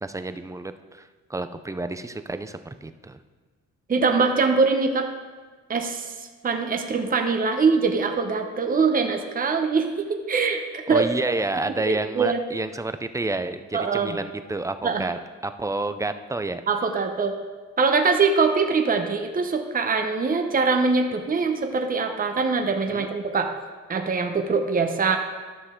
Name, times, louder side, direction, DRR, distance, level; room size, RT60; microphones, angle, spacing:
voice 1, 0.0-3.2 10.9-15.2 15.4-16.6 22.9-23.1, right 2 dB, 10° right, 10 dB, 0.4 m, -29 dB
voice 2, 3.9-5.1 5.7-11.0 11.9-12.4 13.7-14.2 14.8-15.0 16.7-17.3 17.8-23.5 23.9-25.2, right 4 dB, 30° right, 4 dB, 0.9 m, -23 dB
12.0 x 6.4 x 3.7 m, 1.4 s
cardioid pair, 90°, 30 cm